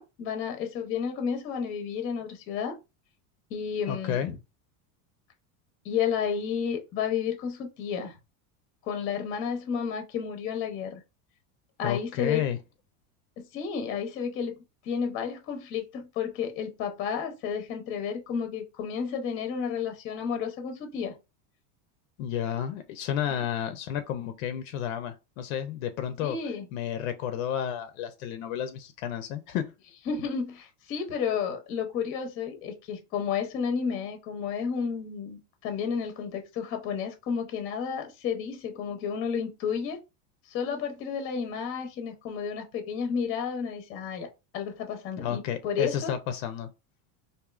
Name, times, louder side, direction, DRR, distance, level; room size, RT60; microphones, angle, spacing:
voice 1, 0.0-2.8 3.5-4.4 5.8-8.1 8.8-11.0 11.8-12.4 13.4-14.5 14.8-21.1 26.2-26.7 30.1-40.0 40.5-44.3 44.5-46.1, left 7 dB, 30° left, 0.8 m, -31 dB
voice 2, 3.9-4.3 11.8-12.6 22.2-26.4 26.7-29.7 45.2-46.7, left 9 dB, 60° left, 0.6 m, -31 dB
4.9 x 2.6 x 2.4 m
cardioid pair, 175°, 46 cm